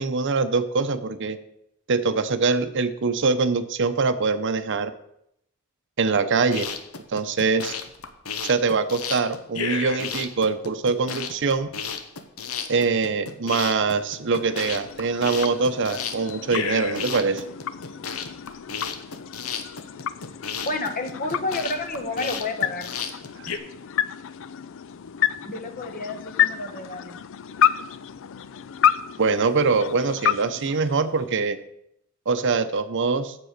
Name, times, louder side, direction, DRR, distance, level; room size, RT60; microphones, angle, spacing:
voice 1, 0.0-1.4 1.9-4.9 6.0-6.7 7.1-7.8 8.4-11.7 12.7-17.4 29.2-31.6 32.3-33.4, right 4 dB, 60° right, 11 dB, 0.7 m, -23 dB
sound 1, 6.4-23.6, left 6 dB, 80° left, 1.0 m, -33 dB
sound 2, 13.8-31.5, left 9 dB, 65° left, 0.4 m, -30 dB
voice 2, 20.6-22.9 25.4-27.2, left 2 dB, 40° left, 6 dB, 1.2 m, -30 dB
7.7 x 7.6 x 6.5 m, 0.77 s
head